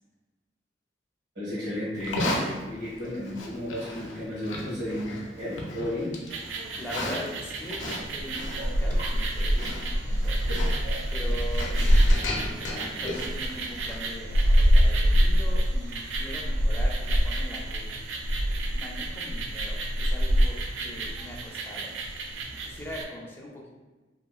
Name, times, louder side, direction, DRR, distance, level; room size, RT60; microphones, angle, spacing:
voice 1, 1.3-6.2, left 1 dB, 75° right, -8 dB, 1.4 m, -33 dB
Livestock farm animals working animals, 1.9-14.1, left 1 dB, 90° left, 0.5 m, -36 dB
sound 1, 6.3-23.0, equal, 90° right, 0.3 m, -26 dB
voice 2, 6.8-7.8 8.1-10.4 11.1-11.8 12.4-17.9 18.7-21.9 22.6-23.8, equal, 10° left, -2 dB, 0.4 m, -41 dB
2.9 x 2.2 x 2.3 m, 1.2 s
head